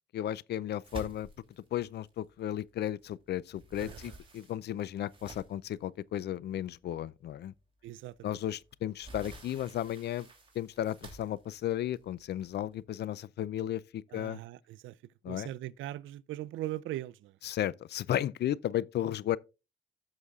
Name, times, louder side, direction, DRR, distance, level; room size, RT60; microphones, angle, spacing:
voice 1, 0.1-1.3 1.7-7.5 8.2-10.3 10.5-14.4 15.2-15.5 17.4-19.4, left 12 dB, 55° left, 0.4 m, -34 dB
sound 1, 0.8-3.0 3.3-5.7 6.4-6.5 6.9-7.1 8.4-12.7, right 2 dB, 25° right, 2.9 m, -50 dB
voice 2, 3.8-4.2 7.8-8.4 14.1-17.4, right 14 dB, 80° right, 0.4 m, -41 dB
15.0 x 6.3 x 2.4 m
cardioid pair, 90°, 20 cm